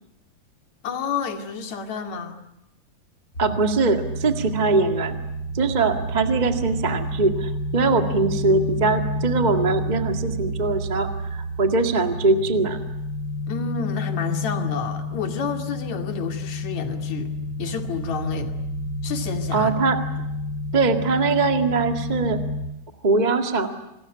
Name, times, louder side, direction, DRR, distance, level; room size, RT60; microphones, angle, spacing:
voice 1, 0.8-2.4 13.5-17.3 17.6-18.5 19.0-19.7 20.2-20.3, left 5 dB, 50° left, 6 dB, 3.4 m, -30 dB
sound 1, 3.3-22.6, left 1 dB, 25° left, 4.9 m, -30 dB
voice 2, 3.4-5.2 5.5-12.8 19.5-20.0 20.7-22.4 23.0-23.7, right 3 dB, 35° right, 6 dB, 0.7 m, -22 dB
28.0 x 20.5 x 9.8 m, 0.89 s
omnidirectional pair, 4.4 m